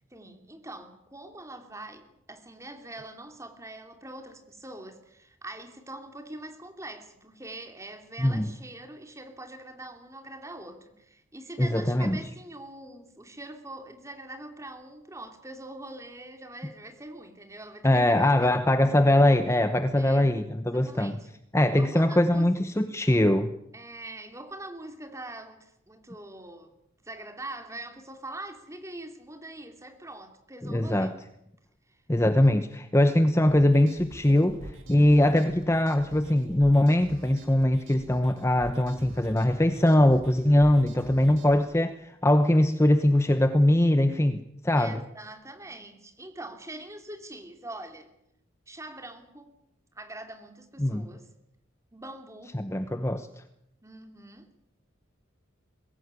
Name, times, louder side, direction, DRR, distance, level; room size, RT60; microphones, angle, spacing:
voice 1, 0.1-18.6 20.0-20.3 20.7-21.3 21.7-22.5 23.7-26.7 27.0-31.1 31.9-32.0 32.4-32.5 44.8-48.1 48.7-49.5 49.9-51.3 51.9-52.6 53.8-54.7, right 1 dB, 15° right, 6 dB, 2.8 m, -43 dB
voice 2, 11.6-12.2 17.8-21.2 21.5-23.5 30.6-31.1 32.1-45.0 50.8-51.0 52.5-53.3, left 1 dB, 15° left, 9 dB, 0.9 m, -22 dB
sound 1, 33.5-41.6, right 1 dB, 70° right, 3.5 m, -46 dB
23.0 x 16.5 x 9.7 m, 0.81 s
head